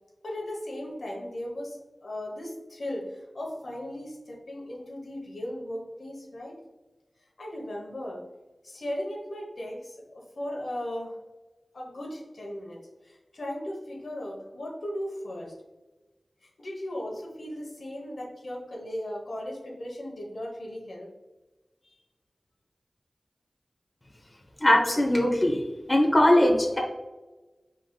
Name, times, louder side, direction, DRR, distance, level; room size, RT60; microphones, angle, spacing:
voice 1, 0.2-6.6 7.4-8.2 8.6-11.1 11.7-15.5 16.6-21.1 21.8-22.0, left 1 dB, 80° left, -1 dB, 1.0 m, -37 dB
voice 2, 24.6-25.6 25.9-26.8, left 1 dB, 25° left, 0 dB, 0.9 m, -20 dB
4.8 x 3.9 x 2.3 m, 1.1 s
wide cardioid pair, 60°, 0 cm